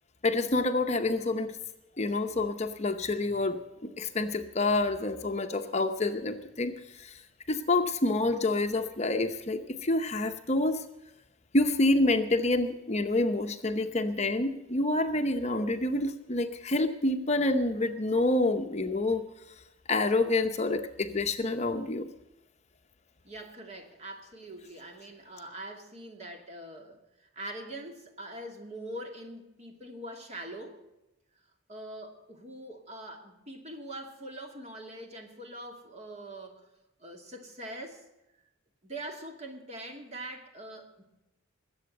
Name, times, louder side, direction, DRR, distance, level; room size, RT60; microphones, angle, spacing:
voice 1, 0.2-1.5 2.0-7.2 7.5-10.8 11.5-19.2 19.9-22.1, left 2 dB, 35° left, 6 dB, 0.8 m, -28 dB
voice 2, 23.2-30.8 31.7-36.6 37.0-38.0 38.8-41.0, right 1 dB, 35° right, 3 dB, 2.4 m, -43 dB
21.0 x 8.0 x 7.8 m, 0.92 s
head